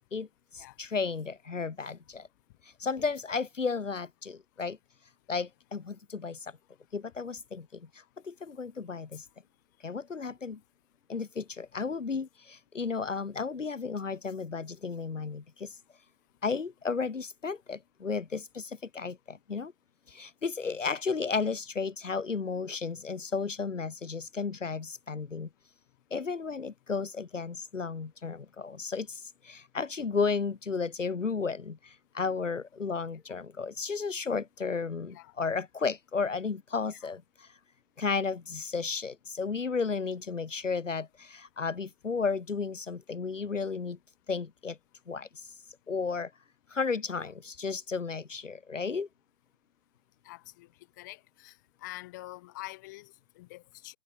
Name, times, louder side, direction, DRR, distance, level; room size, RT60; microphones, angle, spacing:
voice 1, 0.1-2.3 2.8-4.8 5.3-6.5 6.9-9.3 9.8-10.6 11.1-15.8 16.4-19.7 20.1-25.5 26.1-37.5 38.0-44.0 44.3-44.8 45.1-45.5 45.9-46.3 46.7-49.1, left 5 dB, 75° left, 1.8 m, -33 dB
voice 2, 50.2-50.7 51.0-51.6 51.8-54.0, left 19 dB, 15° left, 3.1 m, -45 dB
figure-of-eight pair, 165°, 38 cm